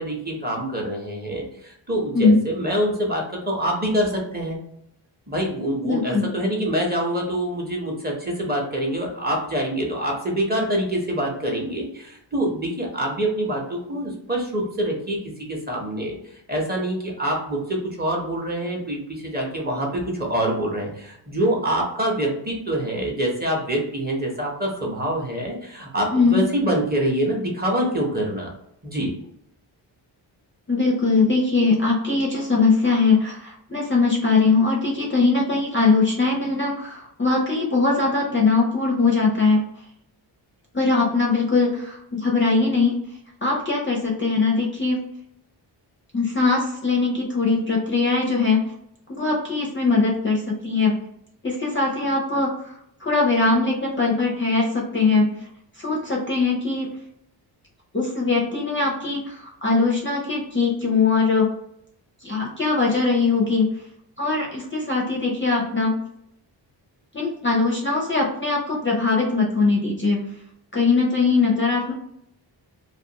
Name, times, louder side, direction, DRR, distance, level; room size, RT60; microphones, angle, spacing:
voice 1, 0.0-4.6 5.3-16.2 16.5-28.5 28.8-29.1, right 1 dB, 20° right, -1 dB, 0.7 m, -25 dB
voice 2, 5.8-6.3 26.1-26.4 30.7-39.6 40.7-43.0 43.4-45.0 46.1-48.6 49.1-51.0 51.4-55.3 55.8-56.9 57.9-61.5 62.2-63.7 64.2-66.0 67.1-70.2 70.7-71.9, left 4 dB, 30° left, -2 dB, 0.5 m, -21 dB
2.4 x 2.2 x 2.8 m, 0.74 s
wide cardioid pair, 125°, 44 cm